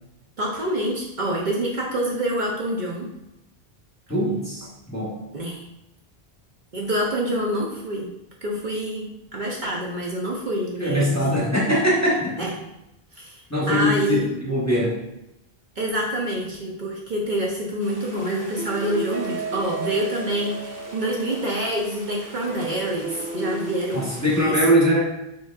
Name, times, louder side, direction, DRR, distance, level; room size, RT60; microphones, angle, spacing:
voice 1, 0.4-3.1 5.3-5.6 6.7-8.1 8.4-11.5 12.4-12.5 13.1-13.4 13.7-14.3 15.8-24.5, right 1 dB, 55° right, -3 dB, 0.8 m, -27 dB
voice 2, 4.1-5.2 10.8-12.4 13.5-15.0 23.9-25.0, equal, 15° left, -5 dB, 1.0 m, -22 dB
sound 1, 17.8-24.4, right 2 dB, 20° right, 0.6 m, -34 dB
6.7 x 3.1 x 2.4 m, 0.89 s
omnidirectional pair, 1.0 m